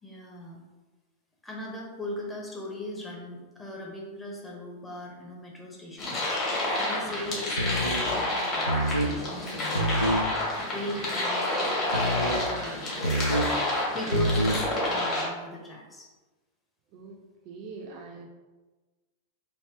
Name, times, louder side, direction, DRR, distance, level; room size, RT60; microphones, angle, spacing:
voice 1, 0.0-0.6 1.4-10.1 10.7-13.4 13.9-16.1, left 2 dB, 10° left, -3 dB, 0.8 m, -39 dB
sound 1, 6.0-15.2, left 1 dB, 30° left, 1.3 m, -29 dB
sound 2, 7.6-8.1 8.7-9.1 9.7-10.3 11.9-12.5 13.0-13.5 14.1-14.6, right 1 dB, 90° left, 0.3 m, -26 dB
voice 2, 16.9-18.2, right 4 dB, 45° right, 1 dB, 0.5 m, -43 dB
3.3 x 2.8 x 2.9 m, 1.2 s
figure-of-eight pair, 90°, 0 cm